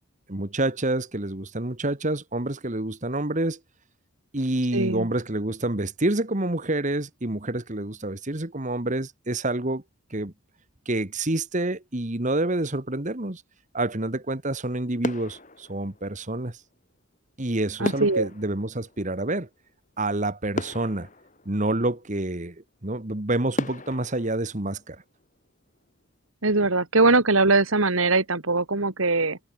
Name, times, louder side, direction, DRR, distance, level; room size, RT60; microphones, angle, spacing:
voice 1, 0.3-3.6 4.3-9.8 10.1-10.3 10.9-13.4 13.7-16.6 17.4-19.5 20.0-21.1 21.5-22.6 22.8-25.0, right 2 dB, 35° right, 1.7 m, -28 dB
voice 2, 4.7-5.1 17.8-18.3 26.4-29.4, right 3 dB, 75° right, 2.6 m, -21 dB
sound 1, 14.4-14.7 15.0-16.5 17.8-19.8 20.2-20.3 20.6-22.1 22.7-22.8 23.6-25.5 25.8-26.0, left 1 dB, 35° left, 7.5 m, -36 dB
head